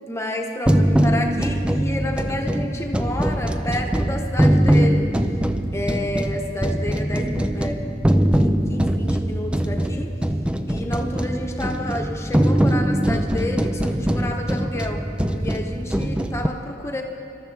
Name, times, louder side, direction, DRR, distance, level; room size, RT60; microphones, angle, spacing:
voice 1, 0.1-5.1 5.7-7.9 8.4-10.2 10.7-17.0, left 1 dB, 15° left, 2 dB, 1.1 m, -30 dB
sound 1, 0.7-16.5, right 1 dB, 5° right, 0.4 m, -22 dB
26.0 x 13.0 x 3.4 m, 2.7 s
head